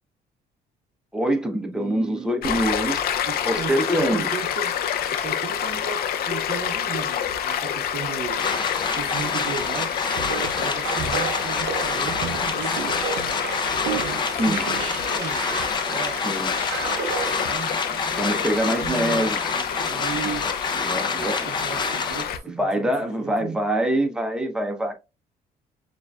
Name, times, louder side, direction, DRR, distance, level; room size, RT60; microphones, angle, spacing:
voice 1, 1.1-4.3 14.3-14.6 16.2-16.5 17.9-19.4 20.1-20.3 20.7-21.5 22.4-24.9, right 1 dB, 5° right, 0.8 m, -25 dB
voice 2, 1.7-2.4 3.3-4.8 5.1-8.5 8.9-9.9 10.6-13.2 13.9-15.4 15.8-16.3 17.4-17.8 18.1-23.6, right 6 dB, 45° right, 0.6 m, -36 dB
Stream, 2.4-22.4, left 9 dB, 65° left, 0.6 m, -28 dB
sound 1, 8.4-22.2, left 4 dB, 25° left, 0.6 m, -28 dB
sound 2, 10.0-17.5, right 8 dB, 85° right, 0.6 m, -33 dB
6.5 x 2.6 x 2.3 m
cardioid pair, 110°, 17 cm